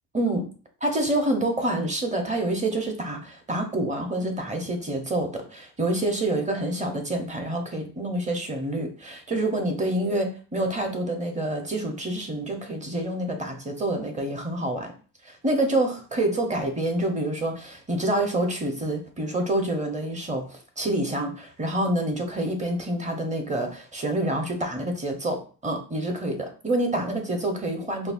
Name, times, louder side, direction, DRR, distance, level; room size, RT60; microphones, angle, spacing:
voice 1, 0.1-0.5 0.8-14.9 15.2-28.1, right 1 dB, 15° right, 4 dB, 0.9 m, -27 dB
5.3 x 2.0 x 2.6 m, 0.38 s
supercardioid pair, 90°, 44 cm